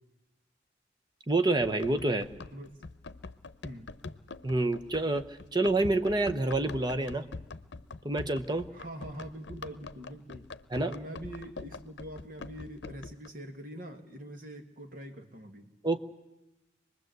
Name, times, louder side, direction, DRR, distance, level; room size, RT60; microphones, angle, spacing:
voice 1, 1.3-2.3 4.4-5.3 5.5-7.2 8.0-8.7 10.7-11.0 15.8-16.0, right 2 dB, 25° right, 7 dB, 1.0 m, -27 dB
Run, 1.6-13.3, left 3 dB, 80° left, 0.8 m, -45 dB
voice 2, 8.7-15.6, right 1 dB, 50° right, 5 dB, 2.1 m, -44 dB
25.0 x 20.5 x 8.1 m, 0.98 s
head